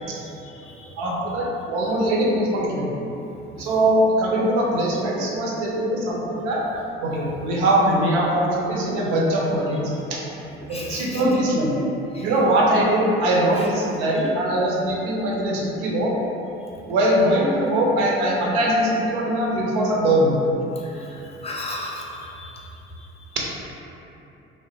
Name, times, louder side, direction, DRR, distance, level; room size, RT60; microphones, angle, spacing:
voice 1, 1.0-2.9 3.6-6.6 7.0-10.2 10.7-11.7 12.2-16.1 16.9-20.4 23.3-23.5, right 1 dB, 65° right, -3 dB, 0.6 m, -21 dB
voice 2, 10.7-11.2 12.1-12.3 21.4-22.5, left 1 dB, 20° left, -4 dB, 0.5 m, -34 dB
2.5 x 2.1 x 3.2 m, 2.9 s
hypercardioid pair, 60°, 30 cm